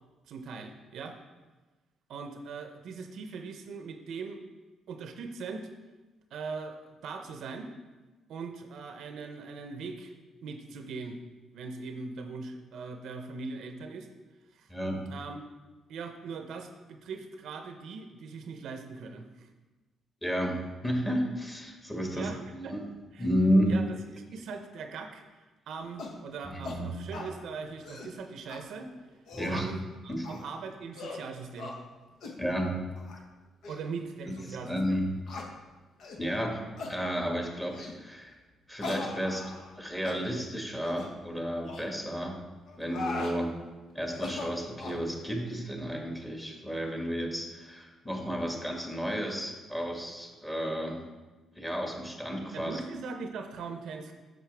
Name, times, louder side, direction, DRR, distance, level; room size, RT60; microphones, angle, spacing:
voice 1, 0.3-1.2 2.1-4.4 4.9-5.7 6.3-7.7 8.3-10.1 10.4-11.2 11.5-14.1 14.5-14.7 15.1-15.5 15.9-19.5 22.1-22.8 23.1-23.3 23.7-25.2 25.7-28.9 29.5-31.8 33.7-35.0 52.5-54.1, right 4 dB, 75° right, 6 dB, 0.6 m, -40 dB
voice 2, 14.7-15.0 20.2-22.8 23.2-23.7 26.4-26.9 29.3-29.7 30.1-30.2 32.4-32.8 34.3-35.2 36.2-36.6 36.9-38.4 38.7-39.4 39.8-42.4 42.8-43.5 43.9-51.0 51.5-52.8, equal, 15° left, 1 dB, 1.6 m, -32 dB
sound 1, 26.0-26.2 26.6-26.8 27.1-27.3 27.7-28.1 28.5-28.6 29.1-29.6 30.2-30.5 30.9-31.2 31.6-31.8 32.2-32.4 33.0-33.2 33.6-33.8 34.4-34.5 35.3-35.5 36.0-36.2 36.8-37.0 37.7-38.0 38.8-39.8 40.0-40.2 40.8-41.1 41.6-41.8 42.7-43.4 44.1-45.0, left 3 dB, 70° left, 1.0 m, -39 dB
8.1 x 6.4 x 3.4 m, 1.2 s
cardioid pair, 90°, 0 cm